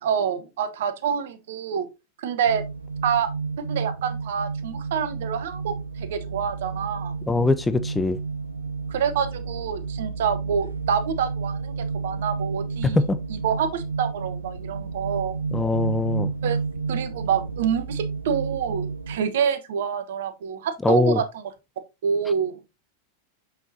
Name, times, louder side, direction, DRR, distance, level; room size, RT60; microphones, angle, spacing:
voice 1, 0.0-1.9 2.2-2.6 3.0-3.3 3.7-7.1 8.9-11.7 12.0-13.0 13.3-15.4 16.4-16.6 16.9-21.4 22.0-22.5, right 7 dB, 55° right, 1.0 m, -27 dB
sound 1, 2.4-19.2, right 4 dB, 80° right, 0.5 m, -31 dB
voice 2, 7.3-8.2 12.8-13.2 15.5-16.3 20.8-21.2, left 3 dB, 10° left, 0.5 m, -22 dB
6.6 x 6.2 x 2.7 m
figure-of-eight pair, 90°, 0 cm